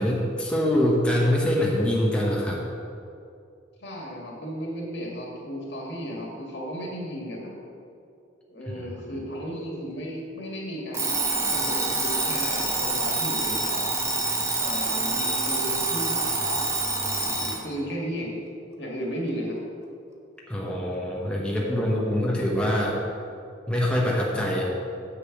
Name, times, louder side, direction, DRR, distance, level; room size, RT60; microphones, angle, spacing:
voice 1, 0.0-2.6 8.7-8.8 20.5-23.0 23.7-24.6, left 1 dB, 5° left, -4 dB, 1.0 m, -24 dB
voice 2, 3.8-7.5 8.5-13.8 14.6-16.7 17.1-18.3 18.8-19.6, equal, 65° left, -2 dB, 2.2 m, -34 dB
Alarm, 10.9-17.6, right 3 dB, 15° right, 0.9 m, -26 dB
8.1 x 6.6 x 6.0 m, 2.5 s
head